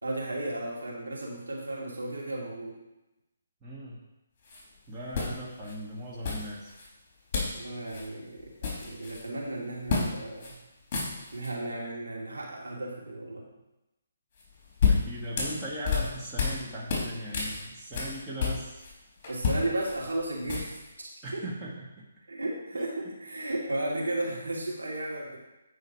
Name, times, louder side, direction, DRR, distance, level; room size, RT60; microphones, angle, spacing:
voice 1, 0.0-2.8 7.5-8.5 8.8-10.6 11.3-13.5 19.3-21.4 22.3-25.4, right 1 dB, 80° right, -3 dB, 2.5 m, -34 dB
voice 2, 3.6-4.0 4.9-6.7 14.8-18.8 21.2-22.0 22.7-22.8, right 1 dB, 15° right, -6 dB, 2.1 m, -39 dB
sound 1, 4.4-4.6 5.1-5.7 6.2-6.9 7.3-7.6 7.9-8.1 8.4-9.3 9.9-10.1 10.4-10.5 10.8-11.5 14.4-16.6 16.9-18.9 19.2-20.9, left 5 dB, 35° left, 3.0 m, -30 dB
9.1 x 5.1 x 4.8 m, 0.97 s
figure-of-eight pair, 145°, 0 cm